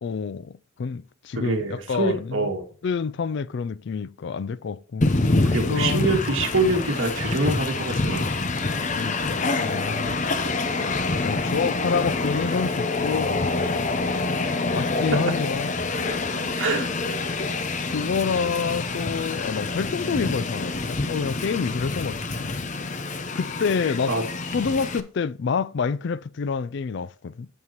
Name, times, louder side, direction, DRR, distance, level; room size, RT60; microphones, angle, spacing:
voice 1, 0.0-2.5 2.8-5.1 5.7-6.2 9.0-10.2 11.2-13.3 14.7-15.7 17.9-22.5 23.3-24.1 24.5-27.5, left 5 dB, 55° left, 0.4 m, -28 dB
voice 2, 1.4-2.6 5.5-8.4 15.1-15.2 16.6-16.9 24.1-24.2, right 2 dB, 70° right, 2.1 m, -25 dB
Train, 5.0-25.0, left 3 dB, 35° left, 0.7 m, -26 dB
16.0 x 5.4 x 3.0 m
head